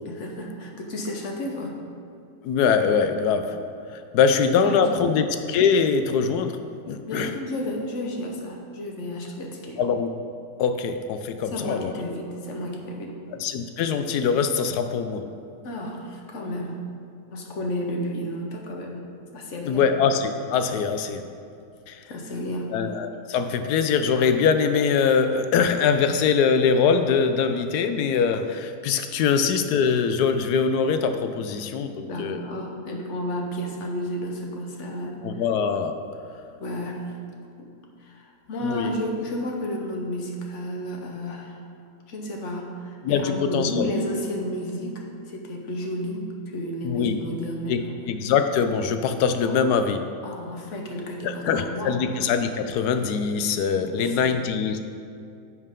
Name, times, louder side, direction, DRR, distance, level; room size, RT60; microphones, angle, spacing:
voice 1, 0.0-1.8 4.3-4.4 4.6-4.8 7.0-9.8 11.5-13.1 15.6-16.8 17.3-19.0 19.3-19.9 22.1-22.8 32.0-35.4 36.6-37.1 37.6-37.7 38.0-41.6 42.1-47.9 49.4-49.6 50.2-52.0 53.8-54.3, equal, 50° left, 1 dB, 1.3 m, -32 dB
voice 2, 2.4-3.6 3.9-6.6 6.9-7.3 9.8-10.1 10.6-11.9 13.4-15.3 19.7-21.2 21.9-22.0 22.7-32.4 35.2-36.0 38.6-38.9 43.0-43.9 46.8-47.2 47.7-50.0 51.2-54.8, left 6 dB, 75° left, 8 dB, 1.1 m, -23 dB
10.0 x 6.6 x 3.7 m, 2.5 s
omnidirectional pair, 1.8 m